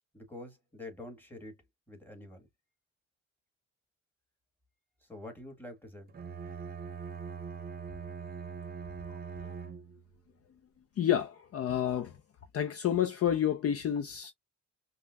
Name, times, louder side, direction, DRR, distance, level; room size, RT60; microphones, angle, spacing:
voice 1, 0.1-1.6 1.9-2.5 5.0-6.1, left 2 dB, 5° left, 1.7 m, -46 dB
Bowed string instrument, 6.1-10.2, right 6 dB, 30° right, 0.7 m, -42 dB
voice 2, 9.1-9.5 11.0-12.2 12.5-14.3, left 10 dB, 50° left, 0.6 m, -30 dB
5.3 x 2.2 x 2.2 m
cardioid pair, 90°, 30 cm